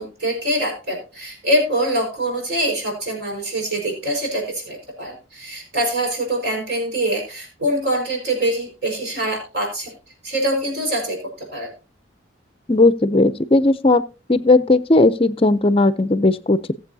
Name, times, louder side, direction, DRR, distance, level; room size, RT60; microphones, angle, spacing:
voice 1, 0.0-9.9 10.2-11.2 11.5-11.7, right 1 dB, 55° right, 5.0 m, -24 dB
voice 2, 12.7-14.0 14.3-16.7, left 2 dB, 30° left, 0.5 m, -16 dB
19.0 x 7.5 x 2.7 m
head